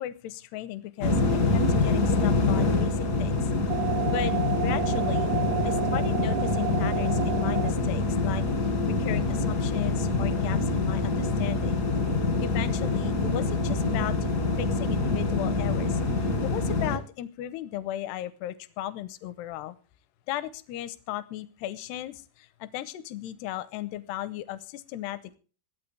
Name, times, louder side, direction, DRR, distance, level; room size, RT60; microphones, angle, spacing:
voice 1, 0.0-3.5 4.1-5.3 5.6-8.5 8.8-11.8 12.4-19.8 20.3-25.4, left 13 dB, 80° left, 15 dB, 2.7 m, -36 dB
sound 1, 1.0-17.0, left 3 dB, 60° left, 0.9 m, -26 dB
sound 2, 3.7-7.7, right 14 dB, 85° right, 3.0 m, -31 dB
22.0 x 8.7 x 3.3 m, 0.38 s
omnidirectional pair, 5.2 m